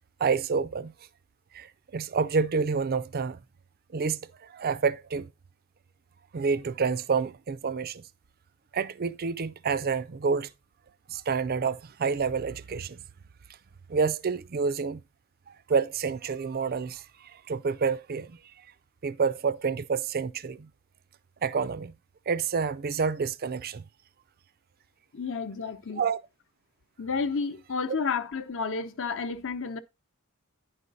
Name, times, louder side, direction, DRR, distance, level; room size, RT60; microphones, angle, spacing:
voice 1, 0.2-0.9 1.5-3.4 3.9-5.3 6.3-8.0 8.7-10.5 11.1-13.0 13.9-15.0 15.7-18.4 19.0-20.7 21.4-21.9 22.3-23.9 26.0-26.2, right 5 dB, 45° right, 0.4 m, -28 dB
voice 2, 25.1-26.0 27.0-29.8, left 5 dB, 60° left, 0.8 m, -31 dB
10.0 x 5.0 x 4.1 m
head